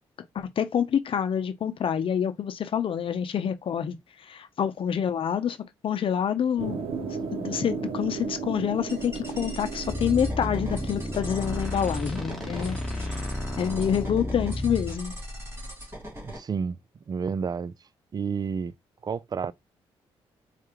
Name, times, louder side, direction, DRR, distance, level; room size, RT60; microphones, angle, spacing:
voice 1, 0.3-6.8 7.3-13.2 13.6-15.2, left 8 dB, 55° left, 0.7 m, -27 dB
sound 1, 6.6-11.6, right 5 dB, 60° right, 1.1 m, -35 dB
sound 2, 8.9-16.4, equal, 25° right, 2.3 m, -40 dB
sound 3, 9.9-15.0, left 1 dB, 5° left, 1.8 m, -32 dB
voice 2, 16.2-16.8 17.1-17.7 18.1-18.7 19.0-19.5, right 6 dB, 40° right, 0.4 m, -30 dB
4.7 x 2.4 x 3.0 m
cardioid pair, 70°, 11 cm